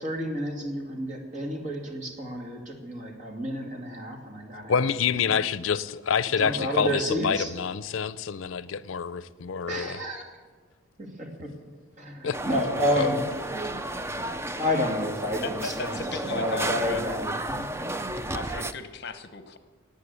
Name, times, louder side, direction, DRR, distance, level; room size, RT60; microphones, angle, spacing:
voice 1, 0.0-4.8 5.2-5.4 6.4-7.5 9.7-10.2 11.0-11.5 12.0-13.2 14.6-17.6, equal, 35° right, 3 dB, 2.3 m, -30 dB
voice 2, 4.7-10.0 12.2-12.4 13.0-13.1, left 6 dB, 80° left, 16 dB, 0.5 m, -27 dB
sound 1, 12.3-18.7, right 1 dB, 15° right, 0.5 m, -33 dB
voice 3, 15.4-17.0 18.3-19.6, left 4 dB, 55° left, 10 dB, 0.9 m, -36 dB
18.5 x 8.4 x 8.2 m, 1.4 s
head